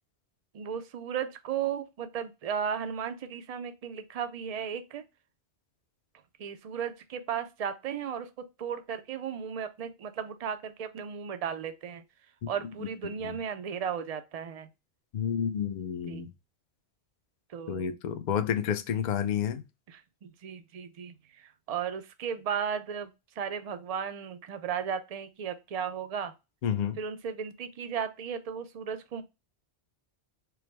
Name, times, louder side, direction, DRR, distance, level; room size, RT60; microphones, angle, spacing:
voice 1, 0.5-5.0 6.4-12.0 12.5-14.7 16.1-16.2 17.5-17.9 19.9-26.3 27.0-29.2, right 7 dB, 55° right, 0.4 m, -35 dB
voice 2, 15.1-16.3 17.7-19.6 26.6-27.0, left 8 dB, 55° left, 0.5 m, -30 dB
4.6 x 2.0 x 3.2 m
omnidirectional pair, 1.2 m